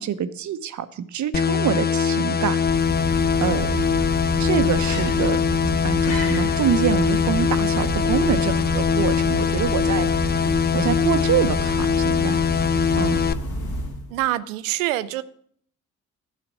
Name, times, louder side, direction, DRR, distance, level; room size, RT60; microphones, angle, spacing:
voice 1, 0.0-2.6 3.4-3.8 4.4-5.4 5.8-10.1 10.7-12.4 13.0-13.2, right 9 dB, 45° right, 13 dB, 0.8 m, -25 dB
sound 1, 1.3-13.3, left 6 dB, 25° left, 0.5 m, -22 dB
sound 2, 2.3-14.2, equal, 65° left, 2.4 m, -30 dB
voice 2, 14.1-15.2, right 15 dB, 75° right, 15 dB, 0.6 m, -25 dB
12.0 x 5.0 x 6.3 m, 0.62 s
figure-of-eight pair, 45°, 40 cm